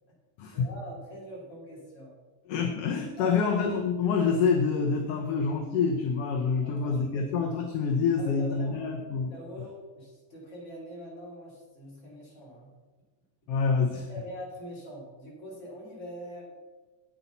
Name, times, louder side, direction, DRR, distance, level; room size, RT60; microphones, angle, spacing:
voice 1, 0.5-2.1 3.1-3.4 6.6-7.3 8.2-8.8 9.3-12.7 14.1-16.5, equal, 25° left, -5 dB, 3.4 m, -43 dB
voice 2, 2.5-9.3 13.5-14.1, left 5 dB, 70° left, 4 dB, 1.6 m, -27 dB
10.0 x 8.6 x 4.0 m, 1.3 s
omnidirectional pair, 3.3 m